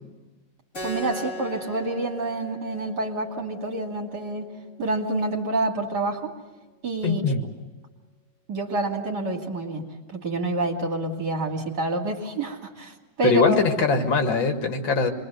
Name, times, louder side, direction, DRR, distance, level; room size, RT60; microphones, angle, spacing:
Keyboard (musical), 0.7-5.8, equal, 40° left, 5.0 m, -40 dB
voice 1, 0.8-4.5 4.8-6.3 6.8-7.4 8.5-13.6, right 2 dB, 60° right, 1 dB, 3.3 m, -28 dB
voice 2, 7.0-7.4 13.2-15.1, left 4 dB, 80° left, 5 dB, 2.7 m, -22 dB
27.0 x 22.0 x 8.0 m, 1.1 s
omnidirectional pair, 2.1 m